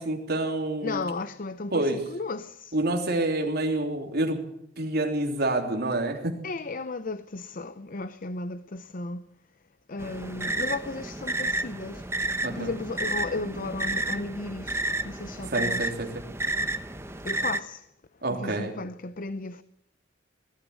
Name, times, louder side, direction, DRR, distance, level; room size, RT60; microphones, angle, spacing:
voice 1, 0.0-1.0 1.7-2.0 2.7-4.4 4.8-6.3 12.4-12.7 15.5-16.1 18.2-18.7, right 2 dB, 55° right, 3.5 m, -27 dB
voice 2, 0.8-2.8 6.4-9.3 9.9-12.1 12.5-15.9 17.0-17.9 18.3-19.6, left 3 dB, 45° left, 0.7 m, -35 dB
sound 1, 10.0-17.6, right 2 dB, 15° right, 1.0 m, -31 dB
21.0 x 13.5 x 9.7 m
head